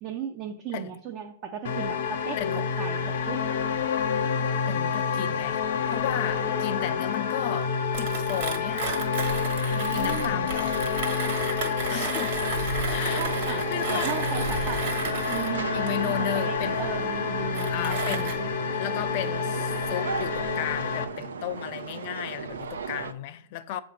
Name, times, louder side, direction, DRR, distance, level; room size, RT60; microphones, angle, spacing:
voice 1, 0.0-2.4 2.8-3.0 3.3-3.7 9.7-10.5 13.2-14.9 15.3-18.5, right 8 dB, 35° right, 0.5 m, -36 dB
sound 1, 1.6-21.0, left 6 dB, 65° left, 0.8 m, -28 dB
voice 2, 2.4-2.7 4.7-9.0 9.9-10.8 11.7-12.4 12.9-14.1 15.7-16.8 17.6-18.4 18.8-23.8, left 11 dB, 45° left, 0.4 m, -34 dB
Mechanisms, 7.9-18.3, right 4 dB, 55° right, 1.4 m, -34 dB
sound 2, 13.0-23.1, right 5 dB, 90° right, 0.5 m, -36 dB
7.3 x 2.6 x 5.8 m
hypercardioid pair, 140°, 0 cm